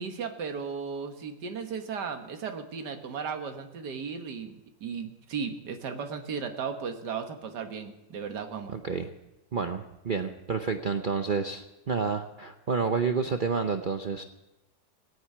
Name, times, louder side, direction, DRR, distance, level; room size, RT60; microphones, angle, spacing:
voice 1, 0.0-8.8, right 6 dB, 65° right, 6 dB, 2.0 m, -35 dB
voice 2, 8.7-9.1 9.5-14.2, right 5 dB, 85° right, 6 dB, 0.4 m, -29 dB
17.5 x 9.5 x 8.5 m, 0.99 s
omnidirectional pair, 2.0 m